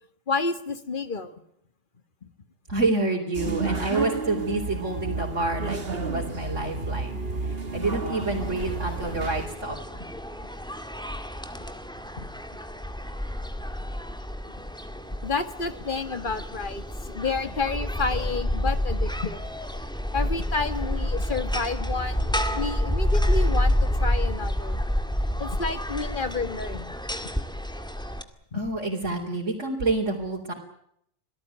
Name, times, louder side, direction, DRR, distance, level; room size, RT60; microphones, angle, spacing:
voice 1, 0.3-1.3 2.2-2.3 12.2-12.3 15.2-19.4 20.1-24.8 25.4-27.0 28.5-28.6, left 4 dB, 40° left, 11 dB, 1.8 m, -30 dB
voice 2, 2.7-7.2 7.7-9.8 28.5-30.5, right 2 dB, 70° right, -3 dB, 4.1 m, -28 dB
sound 1, 3.3-9.5, right 3 dB, 50° right, 2.3 m, -31 dB
sound 2, 8.4-28.2, left 1 dB, 5° left, 1.9 m, -29 dB
27.0 x 18.0 x 9.3 m, 0.72 s
omnidirectional pair, 1.3 m